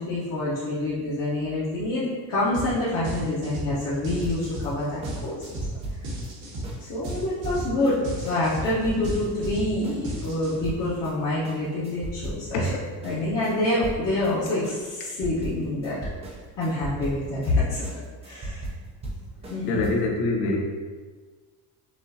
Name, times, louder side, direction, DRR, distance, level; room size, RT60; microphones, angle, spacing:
voice 1, 0.0-5.4 6.8-12.7 13.0-16.0 16.6-17.8 18.2-18.6 19.5-19.8, left 1 dB, 40° left, -11 dB, 1.0 m, -26 dB
sound 1, 2.5-2.7 3.0-10.8, right 1 dB, 85° right, 1.5 m, -34 dB
sound 2, 4.2-11.1 11.4-12.7 13.0-19.9, right 1 dB, 15° right, 0.4 m, -37 dB
voice 2, 19.7-20.6, left 2 dB, 80° left, 0 dB, 0.9 m, -24 dB
6.1 x 2.6 x 2.7 m, 1.5 s
cardioid pair, 170°, 39 cm